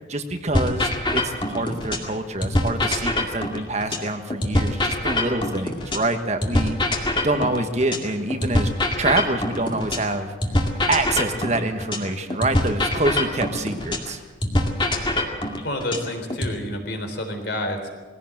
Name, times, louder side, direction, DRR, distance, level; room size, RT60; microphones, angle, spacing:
voice 1, 0.1-6.8 7.2-8.7 9.0-10.3 10.9-14.2, right 2 dB, 35° right, 6 dB, 1.4 m, -26 dB
sound 1, 0.5-2.1 2.4-6.1 6.4-10.1 10.4-14.1 14.4-16.5, left 1 dB, 25° left, 2.2 m, -24 dB
voice 2, 15.6-17.9, left 1 dB, 55° left, 5 dB, 3.7 m, -29 dB
21.0 x 16.5 x 7.8 m, 1.3 s
head